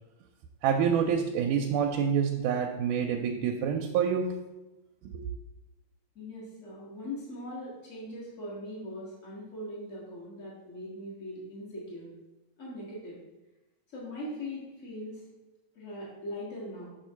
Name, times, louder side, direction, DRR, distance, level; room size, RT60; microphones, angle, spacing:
voice 1, 0.6-4.4 5.0-5.2, right 7 dB, 85° right, 3 dB, 2.1 m, -27 dB
voice 2, 6.1-12.1 12.6-13.2 13.9-15.2 15.7-16.9, left 1 dB, 35° left, -7 dB, 1.2 m, -40 dB
6.5 x 3.7 x 5.5 m, 1.0 s
omnidirectional pair, 3.6 m